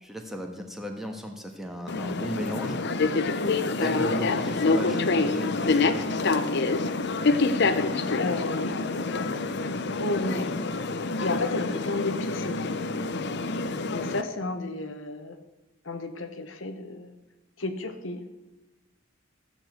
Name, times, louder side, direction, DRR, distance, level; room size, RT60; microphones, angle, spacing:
voice 1, 0.0-2.8 3.1-3.4 3.8-6.1, equal, ahead, 3 dB, 1.5 m, -36 dB
sound 1, 1.9-14.2, left 3 dB, 60° left, 0.8 m, -26 dB
voice 2, 8.2-9.3 10.0-10.5 11.2-12.8 13.9-15.4 15.8-17.1 17.6-18.2, left 2 dB, 75° left, 7 dB, 1.3 m, -32 dB
15.0 x 7.1 x 7.9 m, 1.0 s
head